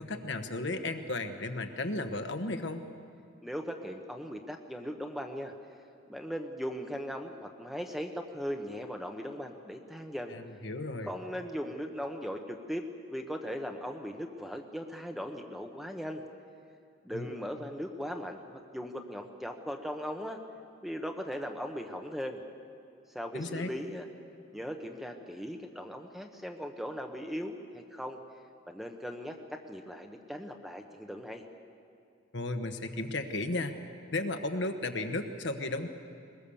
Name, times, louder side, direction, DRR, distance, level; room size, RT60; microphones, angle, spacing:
voice 1, 0.0-2.8 10.3-11.1 17.1-17.4 23.3-23.7 32.3-33.7 34.1-35.9, left 2 dB, 60° left, 6 dB, 1.3 m, -34 dB
voice 2, 3.4-5.5 6.1-10.4 11.0-16.2 17.0-18.4 18.7-20.4 20.8-22.4 23.1-24.1 24.5-28.2 28.7-31.4, equal, ahead, 4 dB, 1.1 m, -38 dB
22.0 x 21.5 x 7.1 m, 2.4 s
head